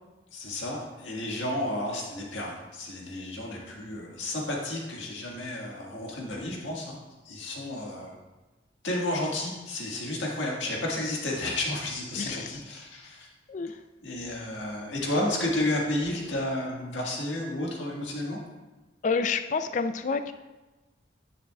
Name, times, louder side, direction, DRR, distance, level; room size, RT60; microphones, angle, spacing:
voice 1, 0.3-7.0 7.2-8.2 8.8-13.3 14.0-18.4, left 1 dB, 85° left, -2 dB, 1.7 m, -32 dB
voice 2, 12.2-12.6 13.5-13.8 19.0-20.3, left 5 dB, 40° left, 10 dB, 0.3 m, -29 dB
10.0 x 6.6 x 2.3 m, 1.1 s
head